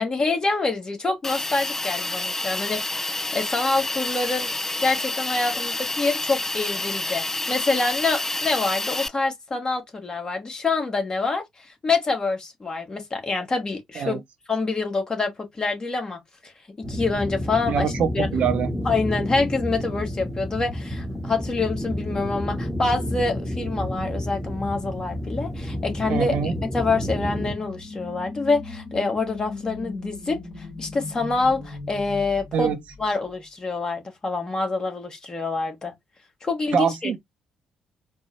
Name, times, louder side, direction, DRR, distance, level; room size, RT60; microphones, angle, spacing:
voice 1, 0.0-4.5 4.8-14.2 14.5-16.5 16.8-18.3 18.8-26.3 26.7-35.9 36.4-37.2, left 3 dB, 30° left, 1.4 m, -26 dB
Hiss, 1.2-9.1, left 2 dB, 15° left, 0.3 m, -28 dB
sound 1, 16.8-27.5, left 1 dB, 5° right, 1.0 m, -30 dB
voice 2, 17.7-18.7 26.1-26.5 32.5-32.8 36.7-37.2, right 7 dB, 55° right, 0.6 m, -24 dB
sound 2, 26.9-33.3, left 3 dB, 50° left, 1.5 m, -38 dB
4.3 x 2.2 x 2.9 m
figure-of-eight pair, 45°, 3 cm